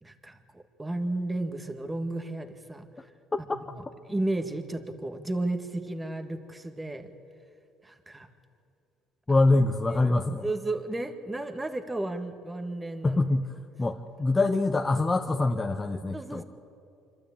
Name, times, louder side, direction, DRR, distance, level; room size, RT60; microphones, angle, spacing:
voice 1, 0.0-2.9 3.4-3.8 4.1-7.1 7.8-8.3 9.3-9.4 10.4-13.2 16.1-16.4, right 2 dB, 15° right, 7 dB, 1.8 m, -33 dB
voice 2, 9.3-10.5 13.0-13.5 13.8-16.4, left 2 dB, 20° left, 5 dB, 0.9 m, -24 dB
26.0 x 12.5 x 8.7 m, 2.6 s
supercardioid pair, 95°, 0 cm